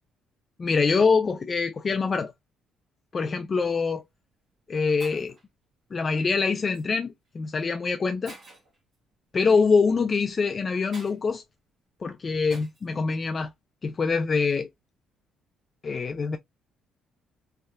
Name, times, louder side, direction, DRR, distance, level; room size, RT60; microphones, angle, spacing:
voice 1, 0.6-2.3 3.1-4.0 4.7-5.3 5.9-8.4 9.3-11.4 12.0-13.5 13.8-14.7 15.8-16.4, left 4 dB, 30° left, 0.3 m, -24 dB
Shatter, 3.8-4.0 4.7-4.8 5.0-5.4 6.7-6.9 7.6-7.7 8.3-8.8 10.9-11.2 12.5-12.9, right 2 dB, 45° right, 1.2 m, -47 dB
3.3 x 2.7 x 2.3 m
cardioid pair, 145°, 0 cm